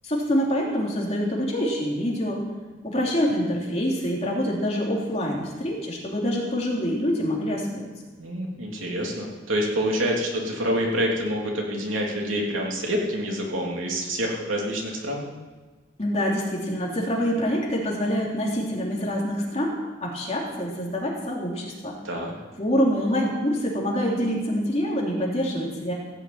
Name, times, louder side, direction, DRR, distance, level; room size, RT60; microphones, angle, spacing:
voice 1, 0.0-2.4 2.8-7.9 16.0-19.7 20.0-22.0 22.6-25.9, equal, 30° left, -2 dB, 3.0 m, -26 dB
voice 2, 8.2-15.2 22.0-22.3, equal, 90° right, -1 dB, 3.3 m, -27 dB
15.5 x 7.0 x 8.8 m, 1.3 s
head